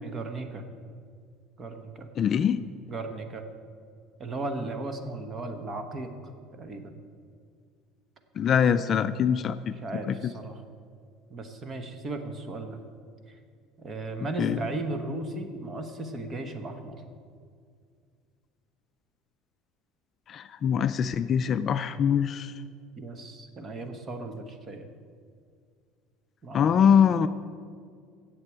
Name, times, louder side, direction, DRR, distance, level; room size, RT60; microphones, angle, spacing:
voice 1, 0.0-0.6 1.6-2.1 2.9-3.4 4.2-6.1 6.5-7.0 9.8-10.6 11.3-12.8 13.8-17.0 23.0-24.9 26.4-26.9, right 2 dB, 30° right, 7 dB, 1.1 m, -36 dB
voice 2, 2.2-2.6 8.4-9.7 10.1-10.3 14.4-14.6 20.3-22.5 26.5-27.3, left 8 dB, 35° left, 11 dB, 0.3 m, -23 dB
8.0 x 7.6 x 8.5 m, 2.2 s
cardioid pair, 135°, 0 cm